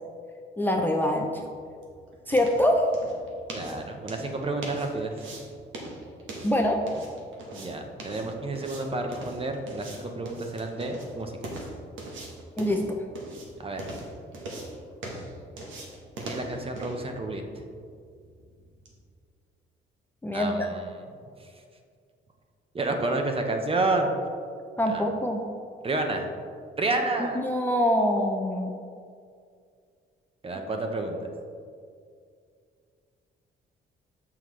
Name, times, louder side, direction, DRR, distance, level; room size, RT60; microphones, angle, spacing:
voice 1, 0.6-1.4 2.3-2.9 6.4-6.8 12.6-13.0 20.2-20.7 24.8-25.4 27.4-28.7, left 1 dB, 10° left, 0 dB, 0.5 m, -24 dB
sound 1, 1.2-19.0, right 1 dB, 80° right, 1.2 m, -42 dB
voice 2, 3.5-5.1 7.5-11.3 13.6-13.9 16.2-17.4 20.3-21.0 21.4-21.5 22.7-24.1 24.9-25.1 25.8-26.3 26.8-27.4 30.4-31.3, right 2 dB, 30° right, 4 dB, 0.8 m, -30 dB
6.7 x 5.7 x 3.1 m, 2.2 s
cardioid pair, 90°, 20 cm